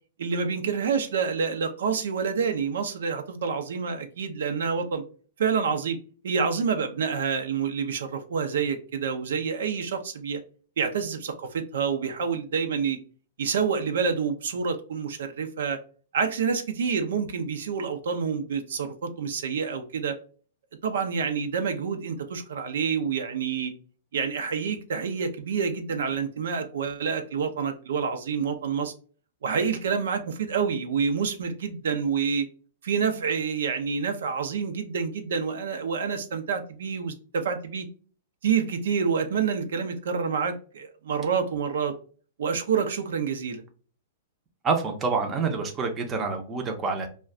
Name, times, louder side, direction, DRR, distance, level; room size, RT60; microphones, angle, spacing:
voice 1, 0.2-5.0 5.4-6.0 6.2-10.4 10.8-13.0 13.4-15.8 16.1-20.2 20.8-23.7 24.1-28.9 29.4-32.5 32.8-37.9 38.4-41.9 42.4-43.6, right 6 dB, 80° right, 6 dB, 0.5 m, -28 dB
voice 2, 44.6-47.1, right 4 dB, 20° right, 4 dB, 0.6 m, -27 dB
2.3 x 2.2 x 3.5 m, 0.40 s
hypercardioid pair, 145°, 0 cm